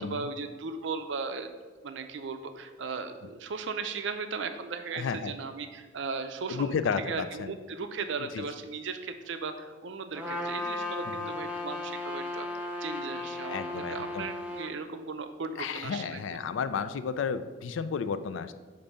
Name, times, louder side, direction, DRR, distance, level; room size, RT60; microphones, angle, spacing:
voice 1, 0.0-1.5 1.8-16.2, right 4 dB, 65° right, 8 dB, 0.5 m, -37 dB
voice 2, 4.9-5.3 6.5-7.5 8.3-8.4 11.1-11.3 13.5-14.3 15.6-18.5, left 6 dB, 75° left, 12 dB, 0.3 m, -32 dB
Trumpet, 10.1-14.7, left 2 dB, 5° right, 0.6 m, -35 dB
6.8 x 2.7 x 5.4 m, 1.3 s
head